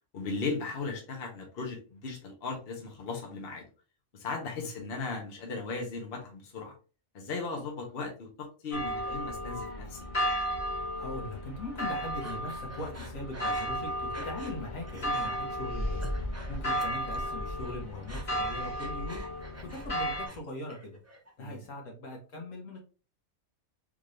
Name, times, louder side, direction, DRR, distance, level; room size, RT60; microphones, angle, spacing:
voice 1, 0.1-3.7 4.1-6.7 7.1-10.1 16.6-16.8 21.4-21.6, left 4 dB, 50° left, 0 dB, 1.1 m, -37 dB
sound 1, 8.7-20.3, equal, 30° left, 0.9 m, -34 dB
voice 2, 11.0-16.0 16.5-21.0 21.4-22.8, left 1 dB, 70° left, 0 dB, 1.5 m, -40 dB
Breathing, 12.2-14.6 14.9-15.3 15.8-17.3 17.6-20.4 20.7-21.3, right 1 dB, 20° right, 0.4 m, -47 dB
3.7 x 2.6 x 3.1 m, 0.35 s
omnidirectional pair, 1.4 m